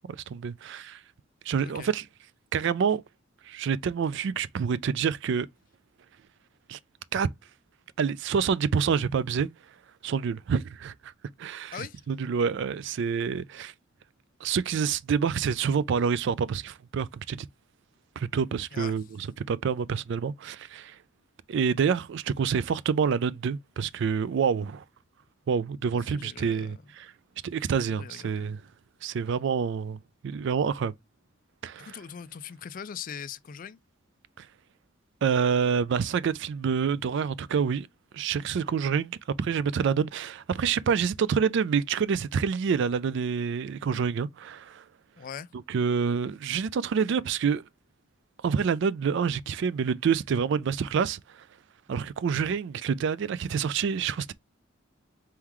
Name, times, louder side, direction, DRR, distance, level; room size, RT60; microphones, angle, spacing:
voice 1, 0.1-1.0 1.5-2.0 2.5-3.0 3.5-5.5 6.7-6.8 7.1-7.3 8.0-9.5 10.0-11.1 11.4-11.8 12.1-13.7 14.4-17.5 18.2-21.0 21.5-24.8 25.5-27.1 27.4-28.6 29.0-30.9 31.6-32.0 34.4-34.5 35.2-37.9 38.1-44.8 45.7-47.6 48.4-51.4 51.9-54.3, right 6 dB, 60° right, 0.3 m, -27 dB
voice 2, 11.7-12.0 18.7-19.0 26.1-26.7 27.9-28.5 31.8-33.8 45.2-45.5, left 7 dB, 40° left, 0.4 m, -41 dB
4.5 x 3.7 x 3.0 m
head